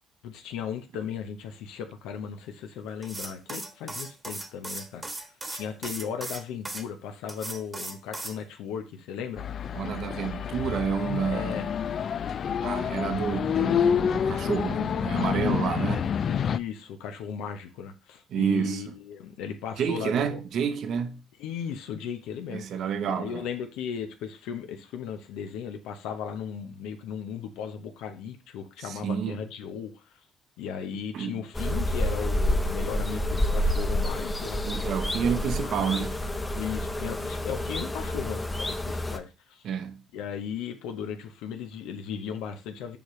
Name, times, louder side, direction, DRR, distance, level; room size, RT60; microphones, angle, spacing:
voice 1, 0.2-9.4 10.3-10.7 11.2-11.7 16.2-20.4 21.4-22.7 23.1-30.2 30.6-34.6 35.6-36.0 36.5-39.7 40.1-43.0, left 7 dB, 90° left, 0.8 m, -36 dB
sound 1, 3.0-6.8 7.3-8.4, right 2 dB, 15° right, 1.2 m, -37 dB
sound 2, 9.4-16.6, left 8 dB, 50° left, 0.3 m, -28 dB
voice 2, 9.7-11.7 12.6-16.1 18.3-18.8 19.8-21.2 22.5-23.4 28.9-29.4 31.1-31.4 34.6-36.2 39.6-40.0, right 7 dB, 65° right, 0.8 m, -29 dB
sound 3, 31.5-39.2, left 1 dB, 15° left, 0.8 m, -28 dB
7.0 x 5.0 x 3.1 m
cardioid pair, 95°, 0 cm